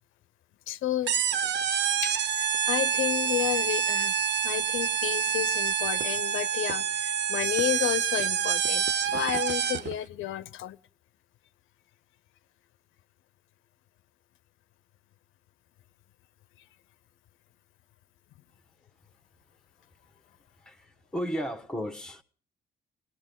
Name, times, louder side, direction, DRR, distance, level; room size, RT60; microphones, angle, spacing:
voice 1, 0.7-1.1 2.0-4.1 4.4-10.8, left 13 dB, 85° left, 0.7 m, -31 dB
sound 1, 1.1-10.0, right 8 dB, 65° right, 0.7 m, -27 dB
voice 2, 20.6-22.2, equal, 5° left, 1.2 m, -34 dB
19.5 x 18.5 x 3.8 m
cardioid pair, 90°, 20 cm